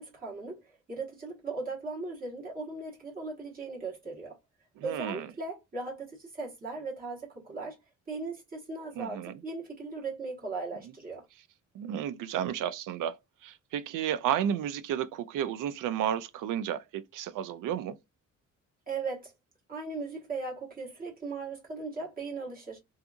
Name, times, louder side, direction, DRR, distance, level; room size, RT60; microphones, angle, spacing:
voice 1, 0.0-4.4 4.8-7.8 8.1-11.2 18.9-19.3 19.7-22.8, right 3 dB, 30° right, 1.3 m, -38 dB
voice 2, 4.8-5.3 9.0-9.4 11.7-13.2 13.4-17.9, right 9 dB, 85° right, 0.5 m, -32 dB
2.7 x 2.4 x 2.3 m
wide cardioid pair, 180°, 31 cm